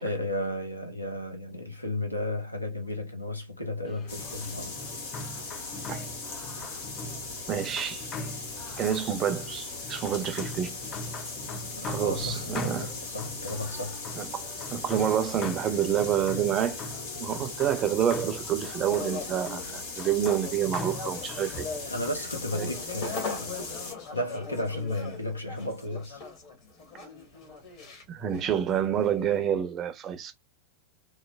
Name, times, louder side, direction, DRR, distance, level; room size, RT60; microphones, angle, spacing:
voice 1, 0.0-4.8 11.7-14.0 21.9-23.6 24.1-26.2, left 1 dB, 85° left, 0.6 m, -34 dB
sound 1, 3.9-22.1, left 2 dB, 30° left, 0.4 m, -42 dB
sound 2, 4.1-23.9, left 3 dB, 60° left, 1.1 m, -39 dB
voice 2, 7.5-8.1 8.8-10.8 11.9-12.9 14.2-16.8 17.1-21.7 22.6-22.7 28.1-30.3, right 9 dB, 30° right, 0.5 m, -28 dB
sound 3, 18.9-29.5, left 4 dB, 45° left, 1.1 m, -40 dB
3.1 x 2.1 x 2.2 m
figure-of-eight pair, 90°, 0 cm